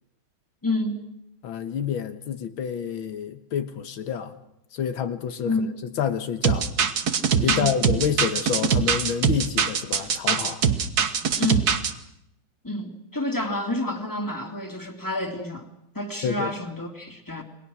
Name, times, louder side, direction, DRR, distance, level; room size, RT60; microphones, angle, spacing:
voice 1, 0.6-1.0 5.4-5.7 7.4-7.7 11.4-11.7 12.6-15.7 15.9-17.4, left 1 dB, 10° left, 4 dB, 2.6 m, -29 dB
voice 2, 1.4-4.4 4.7-5.5 6.0-6.7 7.4-10.6 16.2-16.5, left 8 dB, 85° left, 9 dB, 2.0 m, -28 dB
sound 1, 6.4-11.9, right 7 dB, 55° right, 1.7 m, -22 dB
28.5 x 21.5 x 6.3 m, 0.81 s
omnidirectional pair, 2.2 m